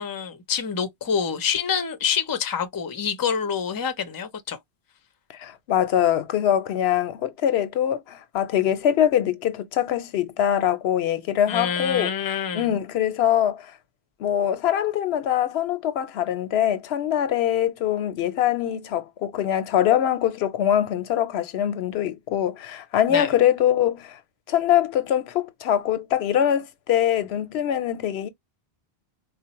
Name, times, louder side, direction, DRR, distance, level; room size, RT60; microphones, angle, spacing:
voice 1, 0.0-4.6 11.5-12.7 23.1-23.3, left 7 dB, 30° left, 0.4 m, -26 dB
voice 2, 5.3-12.1 12.5-13.8 14.2-24.2 24.5-28.3, left 10 dB, 90° left, 0.8 m, -23 dB
4.1 x 2.0 x 2.8 m
omnidirectional pair, 1.0 m